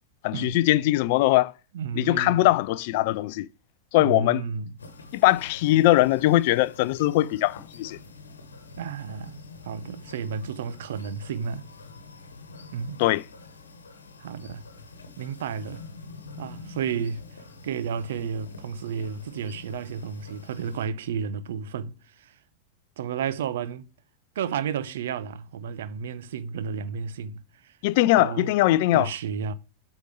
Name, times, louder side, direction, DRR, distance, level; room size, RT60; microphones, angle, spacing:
voice 1, 0.2-1.5 2.0-3.5 3.9-4.4 5.1-8.0 13.0-13.2 27.8-29.1, left 17 dB, 50° left, 0.4 m, -21 dB
voice 2, 1.7-2.5 4.0-4.7 8.8-9.4 9.6-11.6 12.7-13.0 14.2-14.7 15.2-15.9 16.4-17.2 17.6-22.3 23.0-23.9 24.4-27.7 28.2-29.5, right 7 dB, 60° right, 0.6 m, -32 dB
sound 1, 4.8-20.9, left 3 dB, 70° left, 1.2 m, -46 dB
8.2 x 3.8 x 6.1 m
figure-of-eight pair, 90°, 0 cm